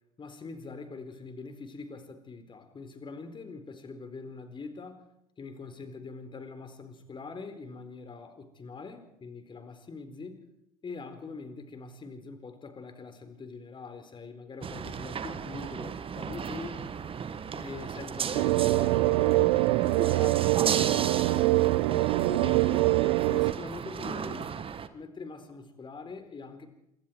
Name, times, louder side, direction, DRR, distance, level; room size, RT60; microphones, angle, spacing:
voice 1, 0.2-5.1 5.4-10.5 10.8-16.8 17.5-22.8 23.3-24.5 24.9-26.7, left 4 dB, 25° left, 8 dB, 4.3 m, -43 dB
sound 1, 14.6-24.9, right 7 dB, 30° right, 1.6 m, -35 dB
sound 2, 18.3-23.5, right 20 dB, 60° right, 0.9 m, -24 dB
27.0 x 24.0 x 4.7 m, 0.80 s
figure-of-eight pair, 70°, 19 cm